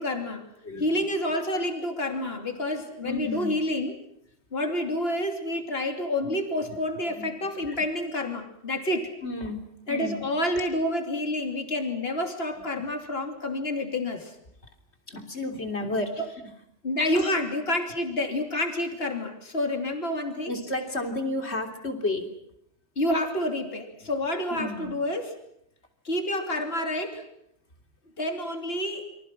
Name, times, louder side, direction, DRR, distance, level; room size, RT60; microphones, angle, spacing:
voice 1, 0.0-0.5 0.8-3.9 4.5-9.1 9.9-14.3 16.8-20.5 23.0-25.3 26.0-27.2 28.2-29.1, left 1 dB, 65° left, 5 dB, 3.3 m, -28 dB
voice 2, 0.6-1.0 3.0-3.5 6.2-6.4 6.7-6.8 7.2-7.3 7.7-7.8 9.2-10.2 12.8-12.9 15.1-16.3 17.1-17.3 17.7-17.8 20.4-22.3 24.0-24.1 24.5-25.0, left 2 dB, 80° left, 5 dB, 3.6 m, -32 dB
29.0 x 24.5 x 6.2 m, 0.74 s
omnidirectional pair, 1.1 m